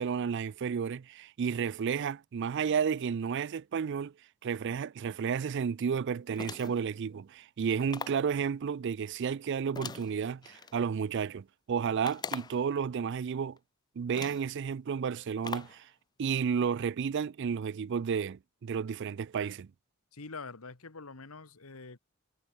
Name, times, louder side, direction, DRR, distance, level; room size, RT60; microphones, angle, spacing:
voice 1, 0.0-4.1 4.4-13.6 14.0-15.9 16.2-19.7, right 6 dB, 55° right, 0.4 m, -32 dB
sound 1, 6.3-6.9 7.9-8.3 9.8-10.7 12.0-12.7 13.6-13.7 14.1-14.5 15.4-15.8, left 5 dB, 20° left, 0.3 m, -41 dB
voice 2, 20.1-22.0, left 4 dB, 75° left, 1.5 m, -45 dB
head